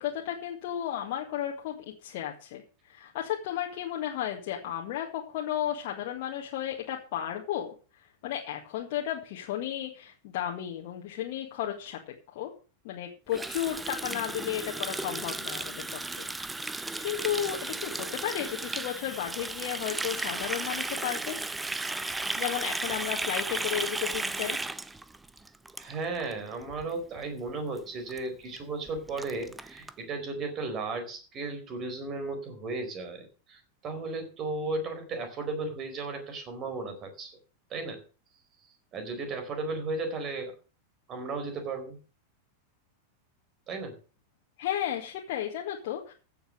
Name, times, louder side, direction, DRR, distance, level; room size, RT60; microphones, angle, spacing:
voice 1, 0.0-1.8 2.0-12.5 12.8-21.4 22.4-24.6 44.6-46.1, left 11 dB, 50° left, 0 dB, 1.9 m, -34 dB
Water tap faucet, 13.3-26.3 26.6-26.9 27.2-27.5 27.8-27.9 28.1-28.2 28.6-28.7 28.9-29.9, right 2 dB, 10° right, 0.7 m, -35 dB
voice 2, 25.8-37.3 37.7-38.0 38.9-40.5 41.1-42.0 43.7-44.0, right 3 dB, 30° right, 7 dB, 4.4 m, -35 dB
15.5 x 7.3 x 6.6 m, 0.36 s
figure-of-eight pair, 90°, 0 cm